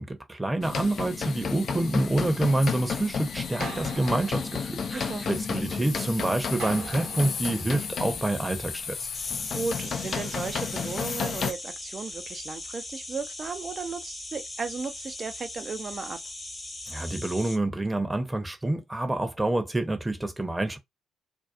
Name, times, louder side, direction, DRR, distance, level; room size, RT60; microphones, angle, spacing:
voice 1, 0.0-9.1 16.9-20.8, right 2 dB, 15° right, 0.7 m, -27 dB
sound 1, 0.6-11.5, left 6 dB, 55° left, 0.4 m, -32 dB
sound 2, 3.6-5.7 6.6-8.7, right 4 dB, 70° right, 1.0 m, -42 dB
voice 2, 4.9-5.3 9.2-16.2, right 5 dB, 45° right, 0.4 m, -35 dB
sound 3, 9.1-17.6, left 2 dB, 25° left, 0.8 m, -39 dB
2.6 x 2.3 x 2.4 m
hypercardioid pair, 50°, 0 cm